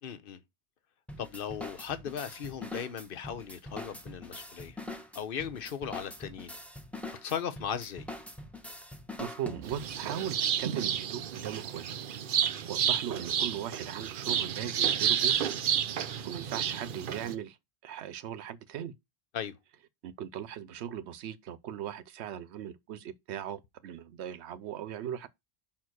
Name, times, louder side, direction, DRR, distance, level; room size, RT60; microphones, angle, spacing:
voice 1, 0.0-0.4 1.2-4.8 5.1-6.5 7.2-8.1 19.3-19.5, left 8 dB, 60° left, 1.0 m, -37 dB
sound 1, 1.1-10.0, left 1 dB, ahead, 1.0 m, -44 dB
voice 2, 9.2-11.8 12.4-15.5 16.2-17.6 17.8-18.9 20.0-25.3, right 9 dB, 90° right, 0.9 m, -38 dB
sound 2, 9.6-17.3, right 9 dB, 55° right, 0.7 m, -31 dB
5.8 x 4.4 x 6.3 m
omnidirectional pair, 1.1 m